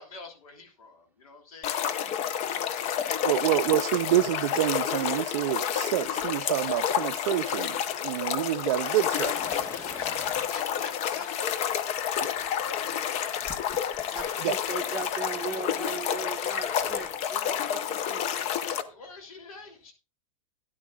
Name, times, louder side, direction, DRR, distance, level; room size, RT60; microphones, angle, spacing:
voice 1, 0.0-2.3 9.1-12.0 12.3-13.8 18.6-19.9, left 4 dB, 80° left, 3.3 m, -47 dB
sound 1, 1.6-18.8, left 9 dB, 35° left, 0.8 m, -30 dB
voice 2, 3.2-7.8 8.0-9.3 14.4-14.5, right 15 dB, 55° right, 0.4 m, -27 dB
Fire, 6.1-17.1, left 1 dB, 10° left, 1.2 m, -47 dB
sound 2, 11.9-17.6, left 8 dB, 60° left, 1.2 m, -44 dB
voice 3, 14.1-18.6, right 6 dB, 10° right, 1.5 m, -39 dB
13.0 x 10.5 x 2.4 m
hypercardioid pair, 125°, 18 cm